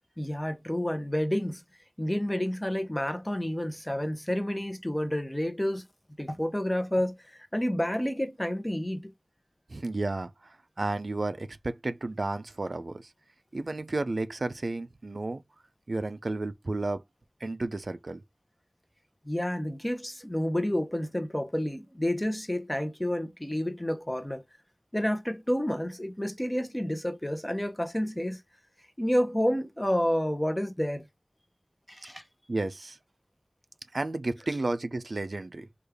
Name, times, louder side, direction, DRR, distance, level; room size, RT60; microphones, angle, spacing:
voice 1, 0.2-1.6 2.0-5.8 6.2-9.1 19.2-24.4 24.9-28.4 29.0-31.0 31.9-32.2, equal, 20° left, 0.7 m, -29 dB
voice 2, 9.7-13.1 13.5-15.4 15.9-17.0 17.4-18.2 32.5-33.0 33.9-35.7, right 2 dB, 75° right, 0.3 m, -32 dB
3.2 x 2.3 x 3.4 m
wide cardioid pair, 45°, 0 cm